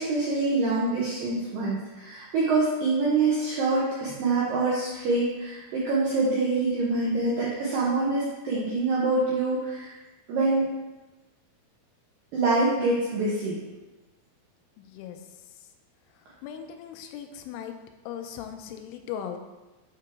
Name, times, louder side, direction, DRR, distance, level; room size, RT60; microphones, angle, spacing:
voice 1, 0.0-9.9 10.3-10.6 12.3-13.6, right 3 dB, 80° right, -7 dB, 2.0 m, -25 dB
voice 2, 14.8-15.2 16.4-17.8 18.1-19.4, left 9 dB, 90° left, 6 dB, 3.0 m, -38 dB
7.8 x 2.9 x 4.7 m, 1.1 s
omnidirectional pair, 5.4 m